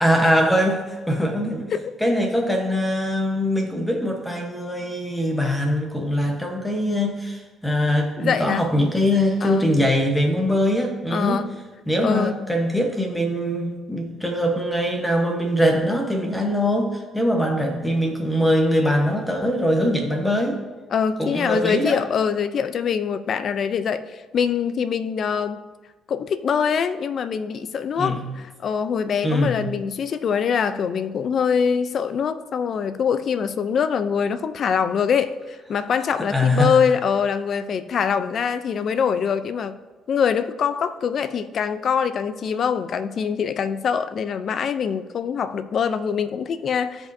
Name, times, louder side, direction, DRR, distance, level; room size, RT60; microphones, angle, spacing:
voice 1, 0.0-1.7 2.0-11.4 11.9-20.6 21.2-22.0 28.0-28.2 29.2-29.6 36.2-36.7, equal, 5° left, 2 dB, 1.1 m, -22 dB
voice 2, 8.2-8.6 9.4-9.7 11.1-11.5 12.0-12.4 20.9-25.6 26.1-39.8 40.1-47.1, left 7 dB, 55° left, 11 dB, 0.5 m, -24 dB
15.5 x 5.3 x 2.7 m, 1.3 s
cardioid pair, 100°, 0 cm